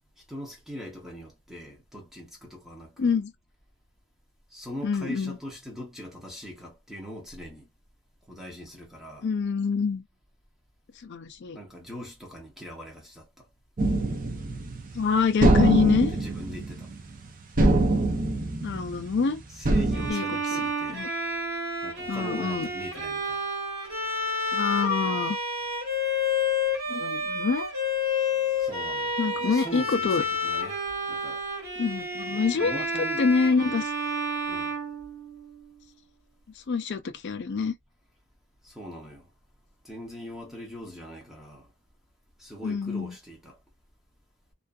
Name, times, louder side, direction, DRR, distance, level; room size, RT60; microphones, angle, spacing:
voice 1, 0.3-3.2 4.5-7.7 8.3-9.3 11.5-13.5 16.1-16.9 19.5-21.1 21.8-23.4 28.3-30.8 31.1-31.4 32.4-33.2 34.5-34.7 38.6-39.3 39.8-41.7 42.4-43.6, equal, ahead, 0.7 m, -41 dB
voice 2, 3.0-3.3 4.8-5.4 9.2-10.0 11.0-11.6 14.9-16.1 18.6-19.4 20.1-20.2 20.5-20.6 20.9-21.1 22.1-22.7 24.5-25.4 26.9-27.7 29.2-30.2 31.8-32.8 33.2-33.9 36.7-37.7 42.6-43.2, left 5 dB, 50° left, 0.4 m, -26 dB
sound 1, 13.8-15.0 15.4-17.3 17.6-19.2 19.6-20.1, right 2 dB, 40° right, 0.5 m, -24 dB
Bowed string instrument, 19.9-35.7, left 2 dB, 70° right, 1.5 m, -30 dB
2.5 x 2.4 x 2.3 m
head